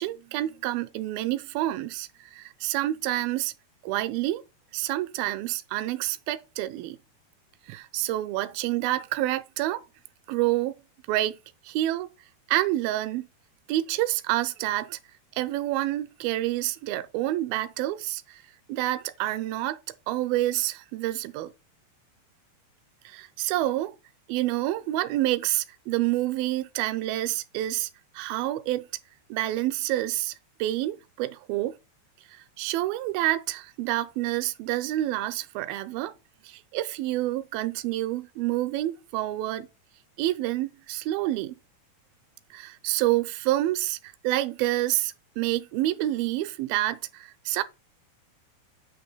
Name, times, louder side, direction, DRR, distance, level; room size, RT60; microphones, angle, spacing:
voice 1, 0.0-3.5 3.8-4.4 4.7-7.0 7.7-9.8 10.3-10.8 11.1-11.4 11.7-12.1 12.5-13.3 13.7-15.0 15.4-18.4 18.7-21.5 23.1-24.0 24.3-27.9 28.1-28.9 29.3-30.3 30.6-31.8 32.3-36.1 36.4-39.7 40.2-41.5 42.5-47.6, right 15 dB, 80° right, 2.3 m, -28 dB
8.4 x 2.9 x 5.6 m
omnidirectional pair, 4.6 m